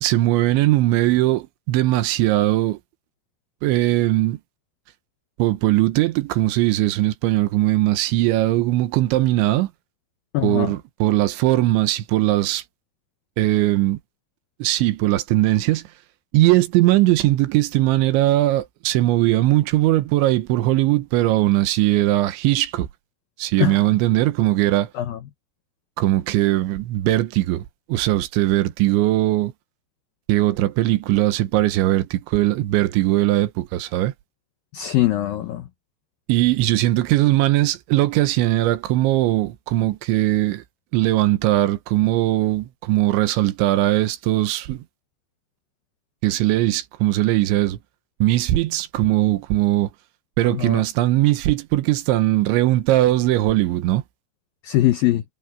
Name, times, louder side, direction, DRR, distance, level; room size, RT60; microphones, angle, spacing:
voice 1, 0.0-2.8 3.6-4.4 5.4-9.7 10.4-12.6 13.4-14.0 14.6-15.8 16.3-22.9 23.4-24.9 26.0-29.5 30.3-34.1 36.3-40.6 40.9-44.8 46.2-47.8 48.2-49.9 50.4-54.0, right 16 dB, 80° right, 3.3 m, -19 dB
voice 2, 10.3-10.7 23.6-23.8 24.9-25.2 34.7-35.7 50.4-50.8 54.6-55.2, left 14 dB, 85° left, 2.0 m, -22 dB
omnidirectional pair, 5.5 m